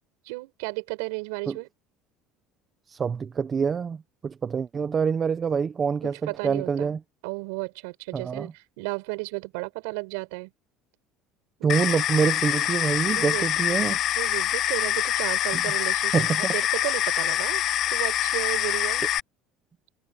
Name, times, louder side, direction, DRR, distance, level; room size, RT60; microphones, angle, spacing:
voice 1, 0.2-1.7 6.0-7.0 7.2-10.5 11.6-11.7 13.1-13.5 14.2-16.2 16.5-17.6 17.9-19.0, right 30 dB, 90° right, 7.4 m, -33 dB
voice 2, 2.9-7.0 8.1-8.5 11.6-14.0 15.5-15.6 16.1-16.5, right 6 dB, 25° right, 0.9 m, -26 dB
sound 1, 11.7-19.2, left 12 dB, 45° left, 0.8 m, -25 dB
cardioid pair, 140°, 0 cm